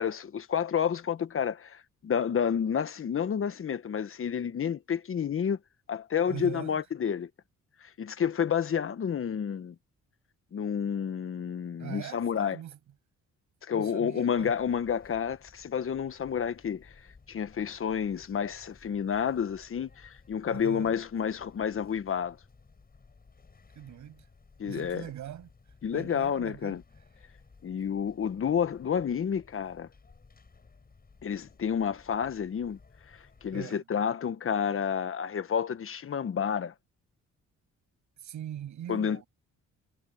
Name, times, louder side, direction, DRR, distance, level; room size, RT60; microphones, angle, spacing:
voice 1, 0.0-5.6 5.9-7.3 7.8-9.7 10.5-12.6 13.6-16.9 17.3-22.4 24.6-25.0 25.8-26.8 27.6-29.9 31.2-32.8 33.4-36.7 38.9-39.2, left 7 dB, 45° left, 1.3 m, -30 dB
voice 2, 6.3-6.8 11.8-12.8 13.7-14.5 20.4-20.9 23.8-24.3 24.6-25.5 25.9-26.8 33.5-33.8 38.2-39.3, right 11 dB, 70° right, 7.4 m, -41 dB
sound 1, 14.3-33.6, left 4 dB, 30° left, 7.9 m, -58 dB
cardioid pair, 90°, 30 cm